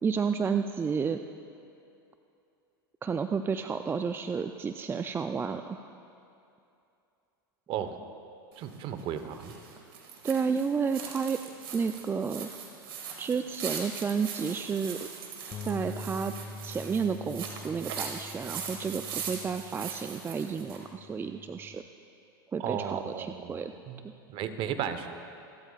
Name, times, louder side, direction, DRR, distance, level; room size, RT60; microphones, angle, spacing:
voice 1, 0.0-1.2 3.0-5.9 10.2-11.4 11.7-12.5 13.2-15.1 15.6-16.3 16.6-21.8 22.5-23.7 24.0-24.1, right 5 dB, 20° right, 8 dB, 0.4 m, -31 dB
sound 1, 8.5-20.8, right 6 dB, 75° right, 2.1 m, -41 dB
voice 2, 8.6-9.5 22.6-23.6 23.9-24.0 24.3-25.1, right 9 dB, 45° right, 9 dB, 1.0 m, -34 dB
Bass guitar, 15.5-21.8, left 3 dB, 30° left, 0.6 m, -45 dB
27.0 x 12.5 x 2.4 m, 2.6 s
hypercardioid pair, 95°, 12 cm